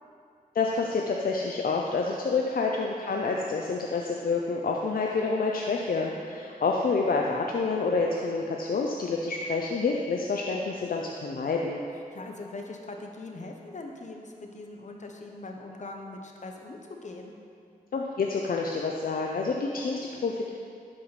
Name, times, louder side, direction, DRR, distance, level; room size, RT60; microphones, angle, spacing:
voice 1, 0.5-11.8 17.9-20.5, left 4 dB, 70° left, 0 dB, 0.6 m, -28 dB
voice 2, 6.0-6.4 12.1-17.3, left 2 dB, 50° left, 2 dB, 1.1 m, -42 dB
11.5 x 4.8 x 4.2 m, 2.3 s
cardioid pair, 55°, 15 cm